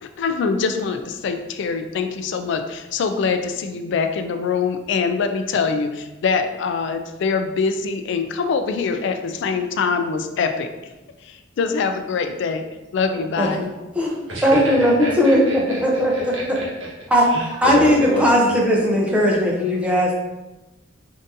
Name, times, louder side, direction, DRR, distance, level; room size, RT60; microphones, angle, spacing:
voice 1, 0.0-10.7 11.2-12.6 12.9-13.6, left 5 dB, 60° left, 7 dB, 0.3 m, -24 dB
voice 2, 13.4-13.7 13.9-16.3 17.1-17.3 17.6-20.1, equal, 5° right, -2 dB, 0.5 m, -18 dB
voice 3, 14.0-16.9 17.2-18.2, equal, 80° right, -5 dB, 1.2 m, -28 dB
3.7 x 2.6 x 2.5 m, 1.1 s
head